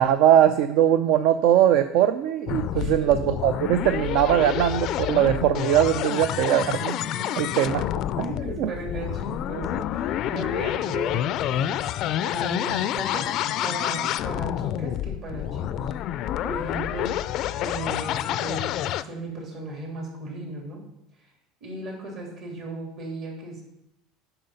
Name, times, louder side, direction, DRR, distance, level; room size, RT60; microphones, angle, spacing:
voice 1, 0.0-6.9 7.4-7.8 8.2-8.3 8.6-8.7, right 10 dB, 70° right, 11 dB, 0.4 m, -20 dB
sound 1, 2.5-19.0, left 12 dB, 50° left, 0.3 m, -28 dB
voice 2, 6.9-7.9 8.2-11.7 12.0-15.9 16.4-17.1 17.5-20.8 21.6-23.6, right 2 dB, 50° right, 0 dB, 2.9 m, -36 dB
7.7 x 5.6 x 5.6 m, 0.87 s
supercardioid pair, 130°, 0 cm